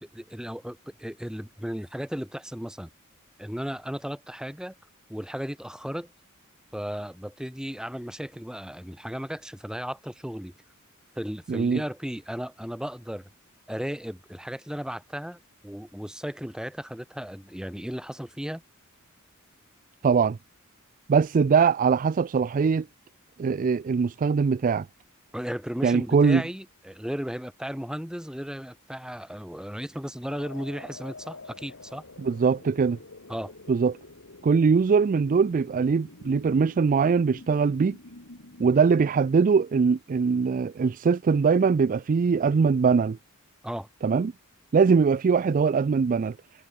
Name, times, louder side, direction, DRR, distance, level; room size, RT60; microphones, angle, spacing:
voice 1, 0.0-2.9 3.4-4.8 5.1-6.1 6.7-10.5 11.2-13.3 13.7-18.6 25.3-32.0 33.3-33.5 43.6-43.9, equal, 5° right, 1.6 m, -35 dB
voice 2, 11.5-11.8 20.0-20.4 21.1-22.9 23.4-24.9 25.8-26.4 32.2-33.0 33.7-34.0 34.4-38.0 38.6-43.2 44.0-44.3 44.7-46.4, right 5 dB, 40° right, 0.3 m, -22 dB
sound 1, 30.3-38.7, left 2 dB, 65° left, 2.8 m, -47 dB
head